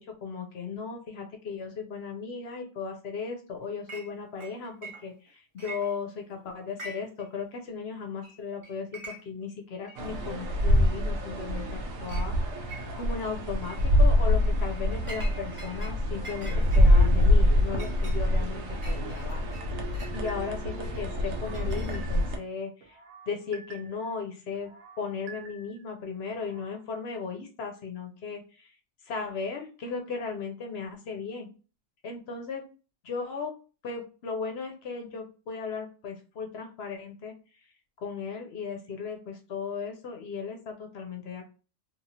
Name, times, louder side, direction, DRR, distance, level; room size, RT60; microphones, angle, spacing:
voice 1, 0.0-12.4 12.9-19.4 20.1-23.0 23.3-24.7 25.0-28.7 29.0-31.5 32.0-32.6 33.0-33.6 33.8-37.3 38.0-41.4, left 5 dB, 60° left, 3 dB, 0.7 m, -36 dB
Chink clink, 3.9-4.1 4.4-5.3 5.6-6.3 6.7-7.3 7.5-7.6 8.2-8.4 8.6-9.4 9.9-10.0 10.8-10.9 11.4-11.7 12.1-12.3 12.7-13.2 13.6-13.9 14.4-15.9 16.2-20.2 20.8-22.3, right 2 dB, 35° right, 0.6 m, -45 dB
sound 1, 10.0-22.4, left 1 dB, 90° right, 1.1 m, -25 dB
sound 2, 20.1-20.7 21.2-22.4 22.8-24.1 24.5-25.9 26.3-26.8, right 4 dB, 70° right, 1.0 m, -49 dB
2.9 x 2.3 x 2.7 m, 0.35 s
omnidirectional pair, 1.4 m